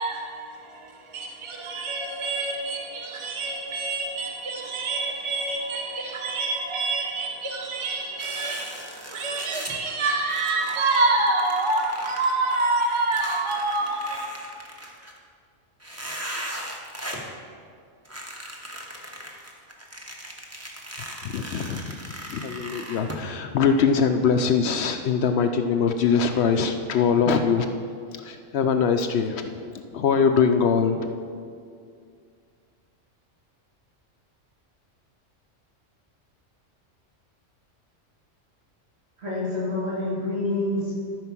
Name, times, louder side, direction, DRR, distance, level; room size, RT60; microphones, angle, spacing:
voice 1, 0.0-14.3, right 3 dB, 30° right, 0.7 m, -27 dB
sound 1, 8.2-9.8 10.3-15.2 15.8-17.3 18.0-23.2, equal, 15° right, 1.0 m, -38 dB
voice 2, 21.2-21.9 22.3-27.7 28.2-29.5 29.9-31.1, left 6 dB, 65° left, 0.8 m, -22 dB
voice 3, 39.2-41.0, left 2 dB, 60° right, 3.1 m, -27 dB
13.0 x 4.8 x 6.0 m
omnidirectional pair, 1.3 m